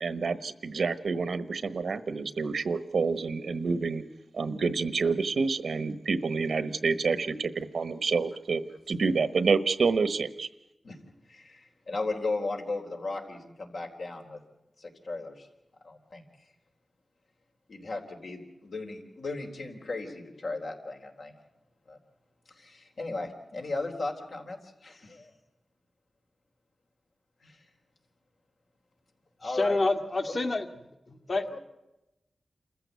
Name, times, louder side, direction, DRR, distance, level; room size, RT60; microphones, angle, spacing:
voice 1, 0.0-4.0 4.3-8.6 8.9-10.5, right 4 dB, 85° right, 13 dB, 1.2 m, -28 dB
voice 2, 11.3-14.4 14.8-15.5 15.8-16.2 17.7-21.3 21.9-22.0 22.6-25.3 27.4-27.6 29.4-29.8, left 3 dB, 75° left, 2 dB, 3.9 m, -36 dB
voice 3, 29.4-30.7 31.1-31.6, left 2 dB, 50° left, 6 dB, 2.0 m, -28 dB
28.0 x 14.5 x 8.3 m, 0.95 s
wide cardioid pair, 95°, 0 cm